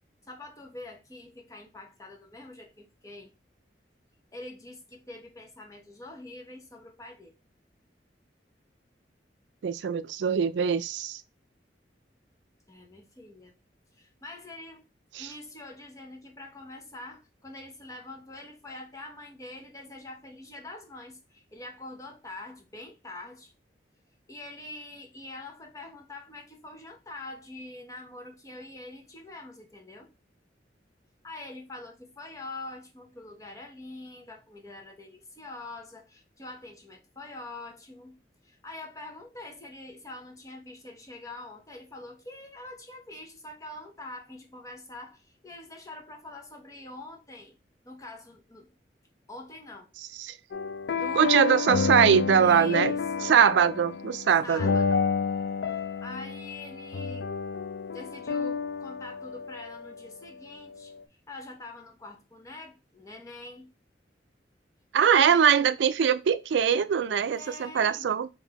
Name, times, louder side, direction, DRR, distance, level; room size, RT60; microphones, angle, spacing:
voice 1, 0.3-3.3 4.3-7.3 12.7-13.5 14.0-14.8 15.2-23.5 24.3-30.1 31.2-38.2 38.4-47.6 47.8-48.7 49.3-49.9 51.0-51.6 52.4-53.3 54.4-55.1 55.7-57.3 57.9-60.9 61.3-63.7 65.1-65.4 67.3-68.2, left 2 dB, 20° left, 0.9 m, -44 dB
voice 2, 9.6-11.2 15.2-15.3 50.2-50.3 51.2-52.9 53.2-54.7 64.9-68.3, right 7 dB, 85° right, 0.3 m, -22 dB
sound 1, 50.5-60.0, left 5 dB, 70° left, 0.4 m, -30 dB
3.7 x 2.7 x 4.7 m
head